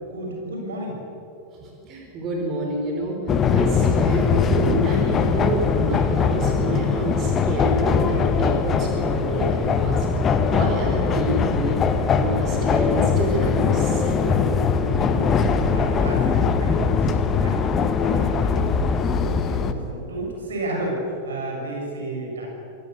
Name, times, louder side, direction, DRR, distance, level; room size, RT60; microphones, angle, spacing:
voice 1, 0.1-1.0 10.4-10.5 15.0-17.7 18.0-22.5, right 1 dB, 65° right, 0 dB, 7.3 m, -32 dB
voice 2, 1.6-3.2 3.5-10.0 10.4-11.8 12.2-14.4, right 2 dB, 35° right, 0 dB, 4.9 m, -28 dB
sound 1, 3.3-19.7, left 5 dB, 25° left, 1.5 m, -21 dB
27.5 x 18.5 x 7.0 m, 3.0 s
figure-of-eight pair, 90°, 0 cm